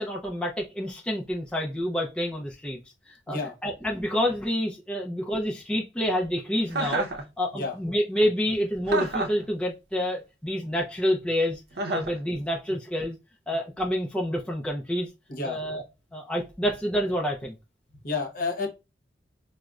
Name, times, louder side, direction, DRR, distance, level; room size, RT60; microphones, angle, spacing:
voice 1, 0.0-2.8 3.1-7.1 7.4-11.6 11.9-13.2 13.5-15.1 15.4-15.8 16.1-17.6, equal, 5° left, 0.4 m, -28 dB
Chuckle chortle, 6.7-7.2 8.9-9.4 11.8-12.2, right 2 dB, 60° right, 0.6 m, -28 dB
voice 2, 15.3-15.6 18.0-18.7, left 3 dB, 50° left, 0.9 m, -30 dB
4.9 x 2.1 x 2.3 m
head